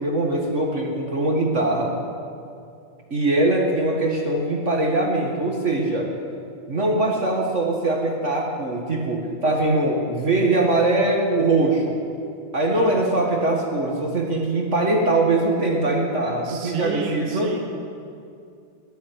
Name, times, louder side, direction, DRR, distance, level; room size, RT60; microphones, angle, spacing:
voice 1, 0.0-2.0 3.1-6.1 6.7-12.0 12.5-17.6, right 2 dB, 35° right, 0 dB, 1.1 m, -22 dB
voice 2, 16.4-17.6, right 3 dB, 90° right, 2 dB, 3.2 m, -32 dB
20.0 x 7.5 x 9.5 m, 2.4 s
omnidirectional pair, 3.6 m